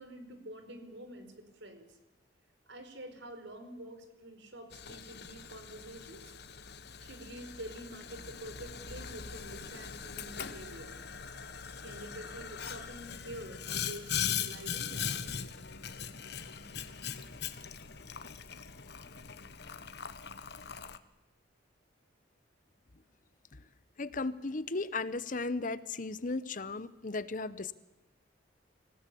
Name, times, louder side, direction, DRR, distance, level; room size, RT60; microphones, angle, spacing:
voice 1, 0.0-2.0 2.7-6.3 7.0-11.0 11.8-15.3, right 1 dB, 70° right, 8 dB, 4.6 m, -47 dB
Boiling, 4.7-21.0, left 7 dB, 60° left, 1.3 m, -40 dB
voice 2, 24.0-27.7, left 3 dB, 45° left, 16 dB, 0.9 m, -36 dB
27.0 x 17.0 x 8.4 m, 1.0 s
head